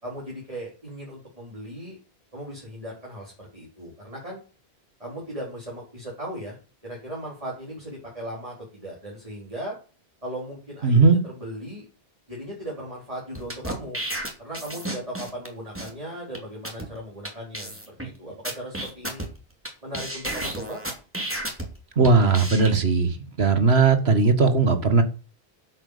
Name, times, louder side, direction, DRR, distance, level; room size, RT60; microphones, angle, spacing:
voice 1, 0.0-2.0 2.3-4.4 5.0-6.6 6.8-9.7 10.2-11.8 12.3-14.0 14.4-19.3 19.8-20.8, equal, 35° right, -4 dB, 4.3 m, -37 dB
voice 2, 10.8-11.2 22.0-25.0, right 4 dB, 75° right, 9 dB, 1.9 m, -18 dB
sound 1, 13.3-15.5 15.7-15.9 16.3-16.4 16.6-16.9 17.2-17.3 17.5-18.1 18.4-19.7 19.9-21.7 22.0-22.7, right 1 dB, 10° right, 2.9 m, -32 dB
9.1 x 8.2 x 6.7 m, 0.35 s
omnidirectional pair, 1.1 m